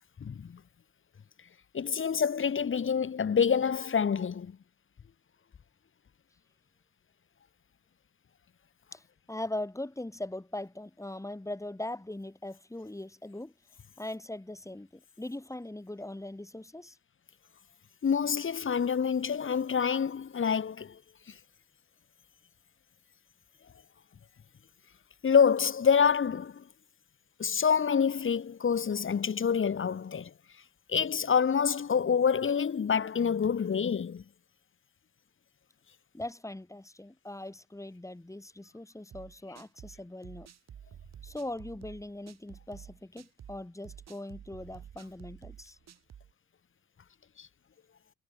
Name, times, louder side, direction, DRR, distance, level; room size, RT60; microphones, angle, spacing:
voice 1, 0.2-0.6 1.7-4.6 18.0-21.0 25.2-26.6 27.4-30.3 30.9-34.2 47.4-47.5, left 7 dB, 40° left, 2.6 m, -27 dB
voice 2, 8.9-13.5 14.0-17.0 36.1-40.5 41.2-45.8, left 1 dB, 10° left, 7.0 m, -40 dB
sound 1, 39.1-46.3, right 9 dB, 60° right, 6.1 m, -50 dB
cardioid pair, 90°, 30 cm